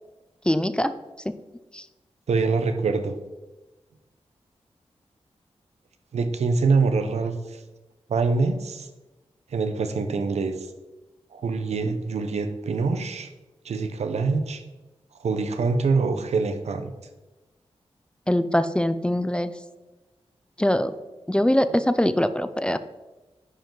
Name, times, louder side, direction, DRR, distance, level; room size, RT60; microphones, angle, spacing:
voice 1, 0.5-0.9 1.3-1.4 18.3-19.5 20.6-20.9 21.3-22.8, left 1 dB, 10° left, 12 dB, 0.3 m, -22 dB
voice 2, 2.3-3.1 6.1-7.6 8.1-8.9 9.5-10.7 11.3-13.3 13.6-14.6 15.2-16.9, right 4 dB, 85° right, 7 dB, 0.8 m, -24 dB
10.0 x 5.1 x 3.8 m, 1.1 s
wide cardioid pair, 105°, 11 cm